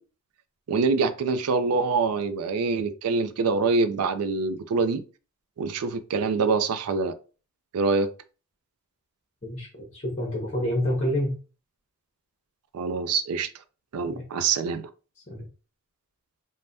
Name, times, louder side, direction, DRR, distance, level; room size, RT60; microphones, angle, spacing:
voice 1, 0.7-5.0 5.6-7.1 7.7-8.1 12.7-13.5 13.9-14.9, right 4 dB, 90° right, 0.4 m, -25 dB
voice 2, 9.4-11.4 14.0-14.3 15.3-15.5, equal, 30° left, 0.7 m, -28 dB
3.3 x 2.1 x 2.5 m
head